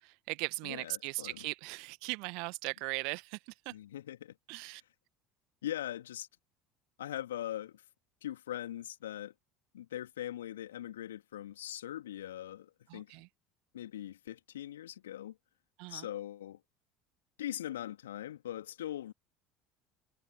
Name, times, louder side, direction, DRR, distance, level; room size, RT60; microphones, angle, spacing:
voice 1, 0.0-3.7 4.5-4.8 12.9-13.3 15.8-16.1, right 31 dB, 60° right, 1.6 m, -39 dB
voice 2, 0.6-1.5 3.7-4.4 5.6-6.3 7.0-7.8 8.2-9.3 9.7-13.2 13.7-15.4 15.9-16.6 17.4-19.1, left 12 dB, 75° left, 3.2 m, -41 dB
figure-of-eight pair, 65°, 0 cm